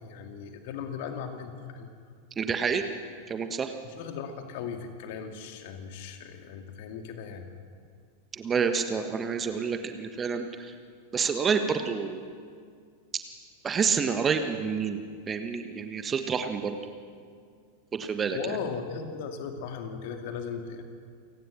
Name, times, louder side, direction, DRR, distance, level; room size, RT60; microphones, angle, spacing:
voice 1, 0.0-1.9 3.8-7.5 18.3-20.8, left 6 dB, 50° left, 5 dB, 2.3 m, -37 dB
voice 2, 2.4-2.8 3.3-3.7 8.4-10.7 11.1-12.2 13.6-15.0 15.3-16.8 17.9-18.4, right 6 dB, 20° right, 7 dB, 1.5 m, -28 dB
28.5 x 18.0 x 6.2 m, 2.1 s
figure-of-eight pair, 90°, 0 cm